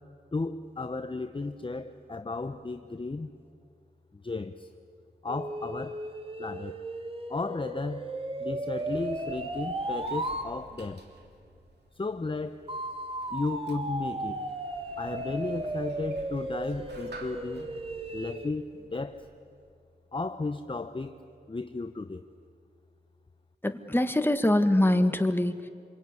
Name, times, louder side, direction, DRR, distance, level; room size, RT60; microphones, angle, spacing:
voice 1, 0.3-3.3 4.2-4.7 5.2-6.0 6.4-6.8 7.3-8.1 8.4-11.0 12.0-12.7 13.3-14.4 15.0-17.7 18.1-19.2 20.1-21.2 21.5-22.2, left 3 dB, 30° left, 1.0 m, -34 dB
sound 1, 5.3-10.5 12.7-18.5, right 1 dB, 35° right, 2.1 m, -35 dB
Sliding door, 8.3-19.6, right 3 dB, 75° right, 3.3 m, -52 dB
voice 2, 23.6-25.7, left 1 dB, 15° left, 1.8 m, -24 dB
27.5 x 22.5 x 9.7 m
cardioid pair, 60°, 17 cm